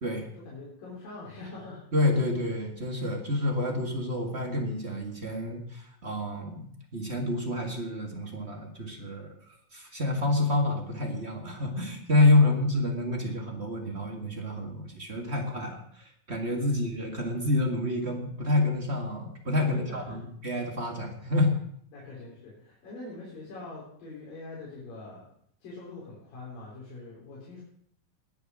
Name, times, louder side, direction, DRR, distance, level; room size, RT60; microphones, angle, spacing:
voice 1, 0.4-1.9 12.3-12.6 16.6-16.8 19.7-20.2 21.9-25.3 25.6-27.6, left 2 dB, 75° left, -6 dB, 5.6 m, -43 dB
voice 2, 1.9-9.3 9.7-21.5, left 2 dB, 30° right, 2 dB, 1.2 m, -28 dB
20.0 x 7.1 x 6.2 m, 0.65 s
omnidirectional pair, 4.0 m